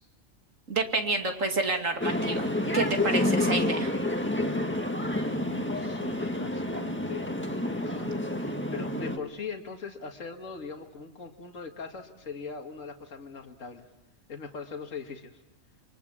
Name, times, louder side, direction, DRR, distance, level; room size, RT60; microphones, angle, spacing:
voice 1, 0.7-2.5 2.7-3.9, right 3 dB, 70° right, 4 dB, 2.8 m, -28 dB
sound 1, 2.0-9.2, left 1 dB, 10° left, 1.7 m, -29 dB
voice 2, 5.2-13.9 14.3-15.4, left 5 dB, 70° left, 4 dB, 2.3 m, -41 dB
28.0 x 24.5 x 7.4 m, 1.0 s
omnidirectional pair, 1.4 m